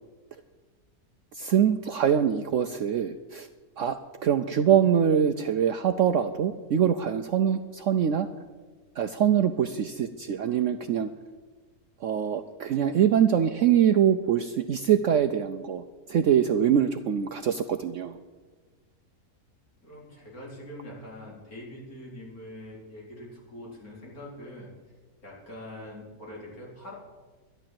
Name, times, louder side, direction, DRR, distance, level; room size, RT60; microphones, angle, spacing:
voice 1, 1.3-3.5 3.8-8.3 9.0-11.1 12.0-15.8 16.1-18.2, right 9 dB, 65° right, 9 dB, 0.8 m, -24 dB
voice 2, 19.8-24.7 25.2-26.9, left 1 dB, 60° left, -4 dB, 4.5 m, -43 dB
11.5 x 11.0 x 7.6 m, 1.3 s
omnidirectional pair, 1.7 m